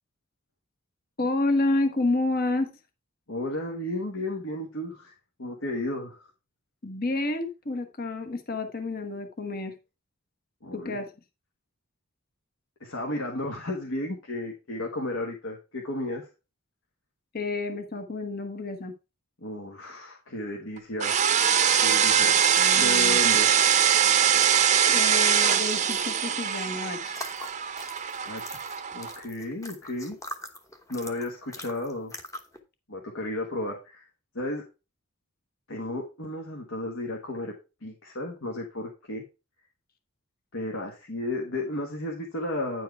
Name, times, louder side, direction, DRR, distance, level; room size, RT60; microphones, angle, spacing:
voice 1, 1.2-2.7 6.8-9.7 10.7-11.1 17.3-18.9 22.5-23.2 24.9-27.2, left 2 dB, 40° left, 6 dB, 1.1 m, -29 dB
voice 2, 3.3-5.1 5.4-6.3 10.6-11.0 12.8-16.3 19.4-21.2 21.8-22.4 22.7-23.5 28.3-28.6 28.9-30.2 30.9-32.1 32.9-34.1 34.3-34.7 35.7-37.5 37.8-39.2 40.5-42.8, left 1 dB, 65° left, 0 dB, 1.5 m, -33 dB
sound 1, 21.0-29.1, right 8 dB, 30° right, 0.6 m, -22 dB
sound 2, 27.1-32.6, left 1 dB, 15° left, 1.0 m, -42 dB
9.6 x 4.7 x 4.5 m, 0.29 s
head